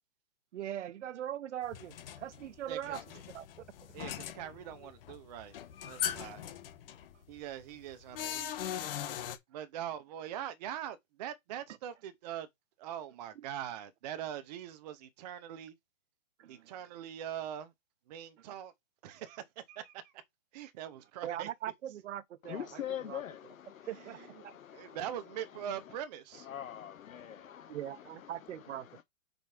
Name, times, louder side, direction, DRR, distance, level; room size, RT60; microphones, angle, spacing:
voice 1, 0.5-3.0 3.3-4.0 13.4-13.5 16.4-16.7 21.2-23.2 23.9-24.2 24.4-24.6 27.7-29.0, right 11 dB, 60° right, 0.7 m, -41 dB
sound 1, 1.6-9.4, left 10 dB, 45° left, 1.2 m, -41 dB
voice 2, 2.7-3.0 3.9-5.6 5.8-6.4 7.3-8.8 9.5-12.5 12.8-15.7 16.5-17.7 18.1-18.7 19.0-20.0 20.5-21.5 24.7-26.5, right 10 dB, 30° right, 0.8 m, -42 dB
voice 3, 22.4-24.0 24.4-26.0 26.3-29.0, left 10 dB, 85° left, 1.1 m, -44 dB
5.2 x 4.6 x 5.9 m
hypercardioid pair, 160°, 40 cm